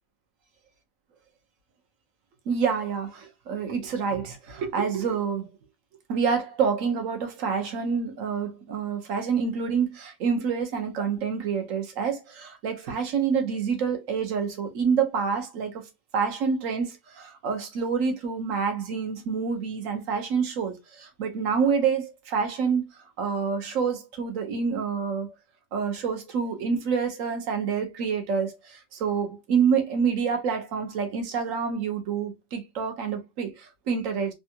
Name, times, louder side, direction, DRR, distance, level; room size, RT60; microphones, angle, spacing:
voice 1, 2.5-5.5 6.1-15.8 16.1-22.9 23.2-25.3 25.7-34.3, right 6 dB, 65° right, 1.2 m, -27 dB
3.4 x 2.3 x 2.7 m
omnidirectional pair, 1.5 m